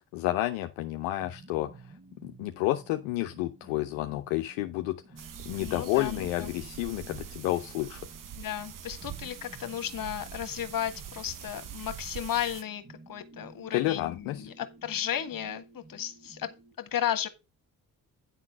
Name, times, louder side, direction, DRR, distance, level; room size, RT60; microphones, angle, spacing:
voice 1, 0.1-1.7 2.2-4.9 5.5-8.0 13.7-14.5, left 16 dB, 85° left, 0.7 m, -30 dB
sound 1, 1.2-16.7, right 3 dB, 35° right, 4.2 m, -53 dB
sound 2, 5.2-12.6, right 10 dB, 50° right, 1.0 m, -44 dB
voice 2, 5.6-6.5 8.4-17.3, left 10 dB, 55° left, 1.5 m, -34 dB
9.7 x 3.9 x 6.0 m
hypercardioid pair, 50°, 40 cm